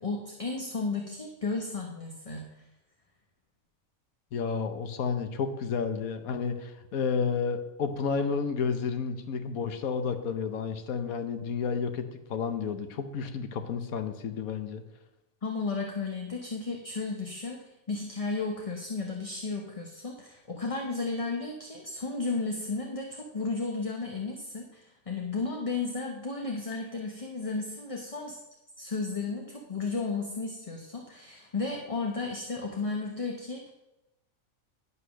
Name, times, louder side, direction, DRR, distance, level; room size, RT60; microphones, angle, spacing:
voice 1, 0.0-2.5 15.4-17.6 17.9-28.3 28.8-33.7, left 3 dB, 25° left, 1 dB, 1.1 m, -33 dB
voice 2, 4.3-14.8, left 5 dB, 85° left, 8 dB, 1.3 m, -31 dB
11.5 x 5.6 x 6.3 m, 0.92 s
omnidirectional pair, 1.4 m